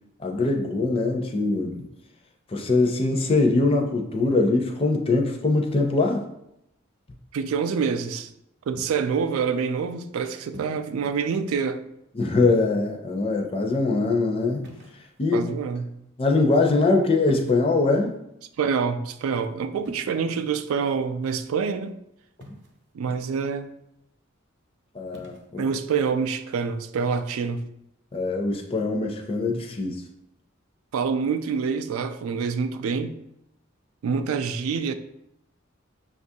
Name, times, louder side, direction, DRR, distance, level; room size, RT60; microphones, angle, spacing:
voice 1, 0.2-1.9 2.5-6.3 12.2-14.6 15.2-15.4 16.2-18.2 24.9-25.6 28.1-30.0, left 3 dB, 25° left, 0.4 m, -22 dB
voice 2, 7.3-8.3 8.7-11.8 15.3-15.9 18.6-22.0 22.9-23.7 25.6-27.7 30.9-33.1 34.0-34.9, right 5 dB, 90° right, 0.3 m, -26 dB
sound 1, 8.8-9.2 10.5-11.0 12.4-13.0 14.6-15.4 17.2-17.8 19.8-20.1 22.4-22.9 25.1-25.5, equal, 55° right, 0.6 m, -45 dB
6.0 x 2.4 x 2.7 m
head